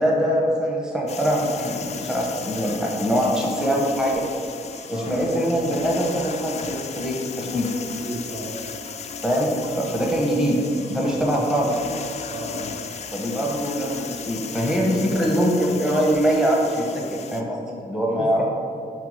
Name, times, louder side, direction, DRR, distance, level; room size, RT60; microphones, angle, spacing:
voice 1, 0.0-4.2 4.9-7.7 9.2-10.6 10.8-11.7 13.1-17.0 17.3-18.4, equal, 5° right, -3 dB, 1.0 m, -23 dB
sound 1, 1.1-17.4, left 5 dB, 40° left, 0.4 m, -35 dB
voice 2, 8.0-8.5 11.3-11.4 12.3-12.7 15.1-15.4 18.2-18.4, right 1 dB, 25° right, -4 dB, 0.8 m, -34 dB
5.8 x 4.4 x 4.9 m, 2.4 s
wide cardioid pair, 150°, 17 cm